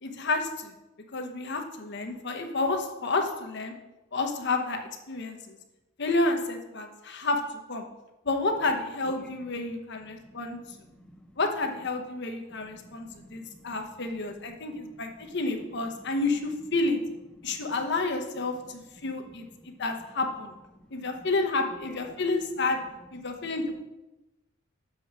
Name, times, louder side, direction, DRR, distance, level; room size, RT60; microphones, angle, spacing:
voice 1, 0.0-0.7 1.1-3.7 4.1-5.6 6.0-7.8 8.2-10.6 11.4-17.0 17.4-20.5 20.9-22.8 23.1-23.8, left 3 dB, 60° left, 4 dB, 1.0 m, -30 dB
voice 2, 9.0-9.5 10.0-11.4 12.5-16.1 17.3-17.8 18.4-20.1 20.7-21.3 21.7-22.2 22.8-22.9 23.1-23.6, left 1 dB, 5° left, 3 dB, 0.8 m, -53 dB
6.9 x 5.1 x 5.9 m, 1.0 s
head